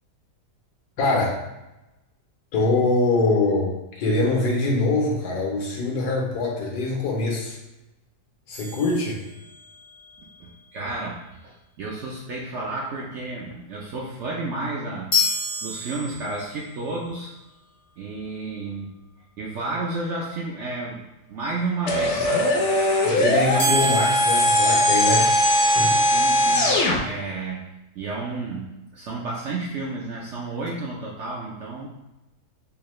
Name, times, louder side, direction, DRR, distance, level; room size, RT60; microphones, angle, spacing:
voice 1, 1.0-1.3 2.5-3.7 4.0-7.6 8.5-9.2 23.0-25.3 25.7-26.0, left 2 dB, 80° left, -2 dB, 1.5 m, -23 dB
sound 1, 8.5-9.8 15.1-16.6 23.6-25.7, left 1 dB, 25° left, 0.6 m, -29 dB
voice 2, 10.4-11.2 11.4-15.1 15.6-17.3 18.0-18.9 19.4-21.0 21.3-22.6 23.2-23.9 26.0-26.7 27.0-28.7 28.9-31.9, right 3 dB, 65° right, -4 dB, 0.7 m, -31 dB
sound 2, 21.9-27.0, equal, 60° left, 0.8 m, -20 dB
4.6 x 2.2 x 3.1 m, 0.95 s
omnidirectional pair, 1.7 m